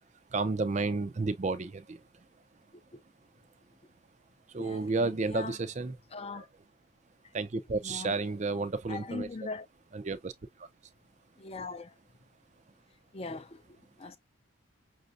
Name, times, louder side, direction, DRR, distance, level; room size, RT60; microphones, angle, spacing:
voice 1, 0.3-2.0 4.5-6.0 6.3-6.4 7.3-9.3 9.9-10.3 10.6-10.7, right 3 dB, 35° right, 0.4 m, -31 dB
voice 2, 4.6-5.6 6.1-6.5 7.8-8.2 8.9-9.7 11.4-11.9 13.1-14.2, left 3 dB, 30° left, 0.5 m, -41 dB
6.0 x 2.4 x 2.5 m
head